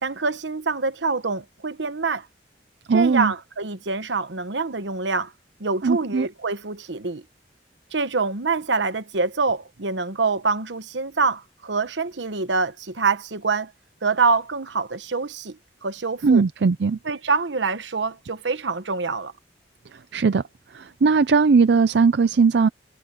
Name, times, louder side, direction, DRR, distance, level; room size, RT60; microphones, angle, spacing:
voice 1, 0.0-2.3 2.9-5.3 5.6-7.2 7.9-13.7 14.0-16.4 17.0-19.3, right 4 dB, 80° right, 1.1 m, -25 dB
voice 2, 2.9-3.3 5.8-6.3 16.2-17.0 20.1-20.4 20.7-22.7, right 5 dB, 65° right, 0.4 m, -18 dB
head